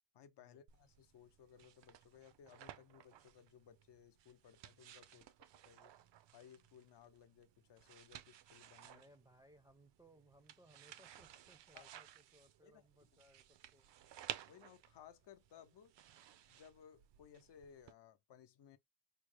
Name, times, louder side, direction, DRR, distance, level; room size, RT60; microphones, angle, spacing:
voice 1, 0.1-5.9 6.3-9.0 11.7-11.9 12.6-13.1 14.5-15.9 16.5-18.8, left 8 dB, 70° left, 0.7 m, -61 dB
sound 1, 0.7-17.9, right 11 dB, 75° right, 0.6 m, -56 dB
voice 2, 8.8-13.9, right 1 dB, 10° right, 0.4 m, -66 dB
4.6 x 2.0 x 3.2 m
cardioid pair, 120°, 43 cm